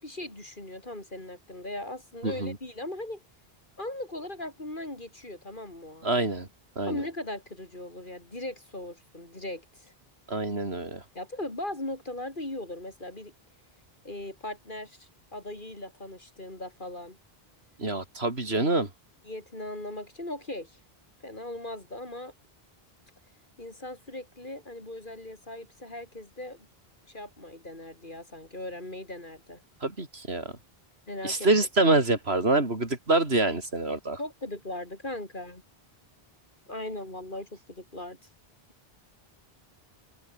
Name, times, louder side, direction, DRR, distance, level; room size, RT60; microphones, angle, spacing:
voice 1, 0.0-3.2 3.8-6.1 6.9-9.9 11.1-13.3 14.0-17.2 19.2-20.8 21.2-22.3 23.6-26.7 27.1-29.6 31.1-31.5 34.2-35.6 36.7-38.2, left 1 dB, 55° left, 4.5 m, -39 dB
voice 2, 2.2-2.6 6.0-6.5 6.8-7.0 10.3-11.0 17.8-18.9 29.8-30.5 31.2-34.2, right 2 dB, 90° right, 4.2 m, -26 dB
omnidirectional pair, 1.0 m